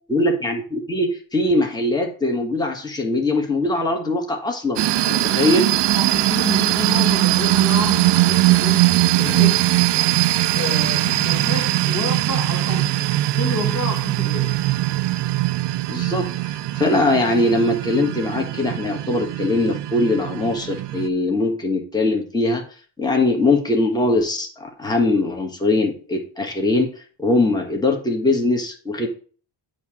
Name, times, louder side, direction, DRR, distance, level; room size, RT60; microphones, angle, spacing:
voice 1, 0.1-5.7 15.9-22.6 23.0-26.9 27.2-29.1, left 2 dB, 10° left, 1.4 m, -21 dB
sound 1, 4.8-21.1, right 16 dB, 65° right, 0.6 m, -20 dB
voice 2, 5.2-5.5 5.9-9.7 10.5-13.0 13.3-14.6, left 4 dB, 40° left, 1.5 m, -30 dB
8.3 x 2.9 x 6.2 m
cardioid pair, 100°, 45 cm